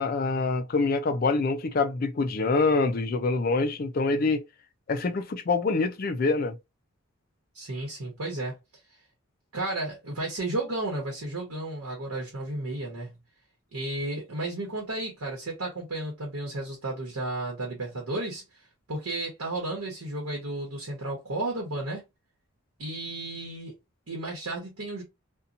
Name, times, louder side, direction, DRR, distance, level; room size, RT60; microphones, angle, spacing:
voice 1, 0.0-4.4 4.9-6.6, left 3 dB, 40° left, 0.4 m, -25 dB
voice 2, 7.5-8.6 9.5-13.2 13.7-18.6 18.9-22.0 22.8-23.8 24.1-25.0, right 2 dB, 80° right, 1.0 m, -33 dB
2.7 x 2.2 x 2.5 m
head